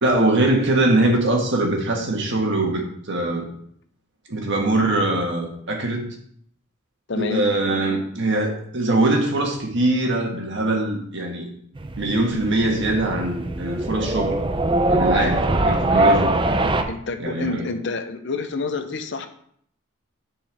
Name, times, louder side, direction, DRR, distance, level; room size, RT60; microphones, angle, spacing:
voice 1, 0.0-3.5 4.3-6.0 7.1-11.5 12.0-14.4 14.9-16.3 17.2-17.6, right 2 dB, 60° right, 1 dB, 1.5 m, -22 dB
voice 2, 7.1-7.5 15.1-15.3 16.9-19.3, left 4 dB, 60° left, 7 dB, 0.7 m, -28 dB
sound 1, 11.8-16.8, right 2 dB, 25° right, 0.5 m, -22 dB
10.5 x 4.5 x 3.5 m, 0.65 s
head